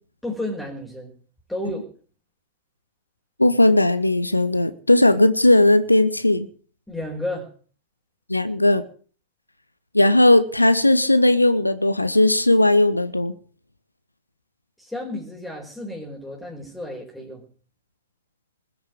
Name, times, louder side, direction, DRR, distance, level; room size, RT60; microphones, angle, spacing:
voice 1, 0.2-1.1 1.5-1.8 6.9-7.5 14.8-17.4, left 1 dB, ahead, 4.9 m, -32 dB
voice 2, 3.4-6.5 8.3-8.8 9.9-13.3, left 1 dB, 85° left, 1.1 m, -17 dB
20.5 x 8.0 x 8.4 m
figure-of-eight pair, 90°, 0 cm